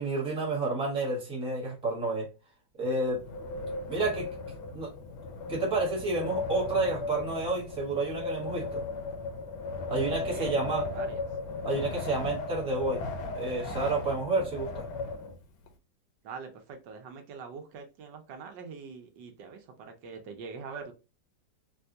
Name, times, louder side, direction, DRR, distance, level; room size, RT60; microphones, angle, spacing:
voice 1, 0.0-2.3 2.8-3.2 3.9-4.3 4.7-4.9 5.5-8.8 9.9-10.9 11.6-13.0 13.3-14.9, right 2 dB, 5° right, -3 dB, 0.8 m, -30 dB
Wind, 3.0-15.7, left 3 dB, 75° left, 1.2 m, -36 dB
voice 2, 10.2-11.2 16.2-20.9, right 5 dB, 80° right, 5 dB, 1.4 m, -43 dB
4.0 x 2.3 x 2.6 m, 0.29 s
omnidirectional pair, 2.0 m